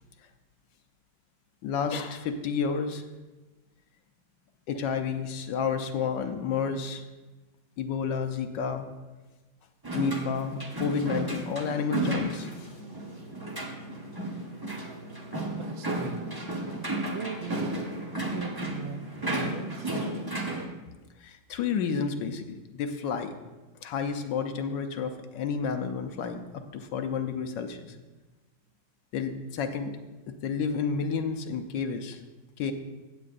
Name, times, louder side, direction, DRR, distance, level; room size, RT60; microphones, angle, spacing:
voice 1, 1.6-3.0 4.7-7.0 7.8-8.9 9.9-12.5 21.2-23.3 23.8-26.4 26.7-27.9 29.1-29.9 30.4-32.2 32.6-32.7, left 6 dB, 70° left, 6 dB, 1.3 m, -30 dB
sound 1, 9.8-20.6, right 1 dB, 20° right, 0.7 m, -33 dB
voice 2, 15.5-16.2 17.1-17.7 18.2-19.9, right 6 dB, 85° right, 7 dB, 1.6 m, -39 dB
16.0 x 8.0 x 2.5 m, 1.2 s
omnidirectional pair, 2.2 m